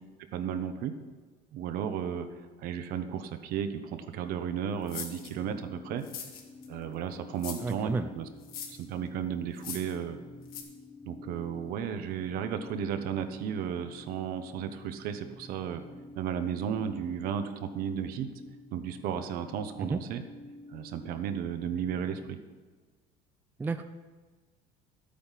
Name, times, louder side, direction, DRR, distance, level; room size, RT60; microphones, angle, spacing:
voice 1, 0.3-0.9 1.5-2.3 2.6-6.0 6.7-8.3 8.8-10.2 11.0-15.8 16.1-18.3 18.7-20.2 20.7-22.4, right 8 dB, 60° right, 9 dB, 1.1 m, -34 dB
sound 1, 4.9-5.3 6.0-6.7 7.4-7.7 8.4-8.8 9.5-9.9 10.5-10.6, left 7 dB, 60° left, 2.1 m, -40 dB
sound 2, 5.3-22.3, left 2 dB, 10° left, 1.0 m, -50 dB
voice 2, 7.6-8.1 19.8-20.0 23.6-23.8, right 4 dB, 10° right, 9 dB, 0.4 m, -31 dB
12.0 x 8.7 x 5.8 m, 1.4 s
cardioid pair, 150°, 17 cm